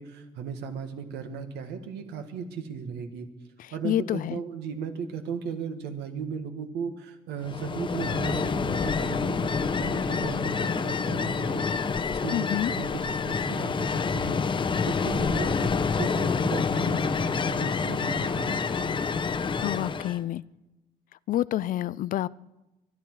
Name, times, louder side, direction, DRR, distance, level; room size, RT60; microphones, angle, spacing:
voice 1, 0.0-3.3 3.7-18.9, right 6 dB, 80° right, 1.8 m, -36 dB
voice 2, 3.6-4.4 12.3-12.7 19.6-20.4 21.3-22.3, left 13 dB, 55° left, 0.4 m, -28 dB
Ocean, 7.4-20.2, left 5 dB, 30° left, 0.8 m, -27 dB
24.0 x 10.0 x 4.7 m
cardioid pair, 110°, 17 cm